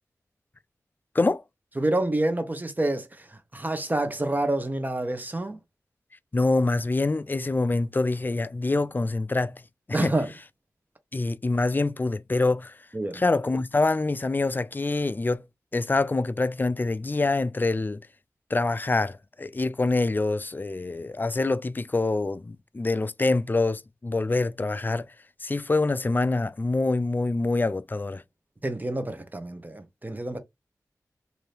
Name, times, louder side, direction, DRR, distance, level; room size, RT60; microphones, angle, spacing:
voice 1, 1.8-5.6 9.9-10.3 12.9-13.2 28.6-30.4, right 1 dB, 30° right, 0.8 m, -28 dB
voice 2, 6.3-9.6 10.0-10.1 11.1-12.7 13.1-15.4 15.7-18.0 18.5-25.1 25.4-28.2, left 3 dB, 30° left, 0.3 m, -25 dB
2.7 x 2.7 x 3.3 m
cardioid pair, 45°, 6 cm